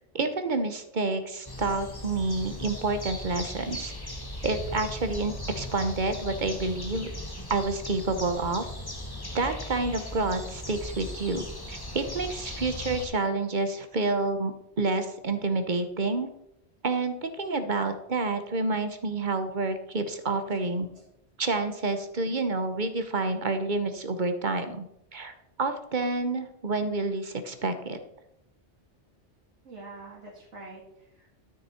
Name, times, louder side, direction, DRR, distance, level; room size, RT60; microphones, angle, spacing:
voice 1, 0.1-3.9 4.4-7.1 7.5-8.7 9.3-16.3 16.8-20.9 21.4-24.9 25.1-28.0, right 3 dB, 45° right, 9 dB, 1.0 m, -29 dB
sound 1, 1.5-13.1, left 1 dB, 20° left, 1.3 m, -38 dB
voice 2, 20.5-21.0 29.6-31.3, right 3 dB, 85° right, -4 dB, 2.2 m, -46 dB
12.5 x 6.6 x 4.3 m, 0.79 s
omnidirectional pair, 1.2 m